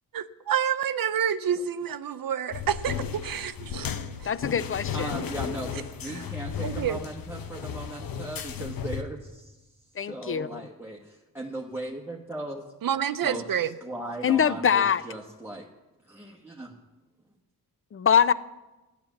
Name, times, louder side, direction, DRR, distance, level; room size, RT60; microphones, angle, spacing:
voice 1, 0.1-3.9 4.2-4.3 6.1-6.2 6.6-7.0 12.8-13.7, right 8 dB, 65° right, 12 dB, 0.6 m, -28 dB
sound 1, 2.5-9.0, left 7 dB, 65° left, 0.9 m, -34 dB
voice 2, 4.2-5.3 10.0-10.6 14.2-15.0 17.9-18.3, left 7 dB, 35° left, 16 dB, 0.5 m, -23 dB
voice 3, 4.9-9.6 10.0-12.6 13.2-13.4 13.8-15.7 16.1-16.7, right 2 dB, 5° right, 0 dB, 1.1 m, -38 dB
14.0 x 10.5 x 7.2 m, 1.1 s
wide cardioid pair, 140°, 38 cm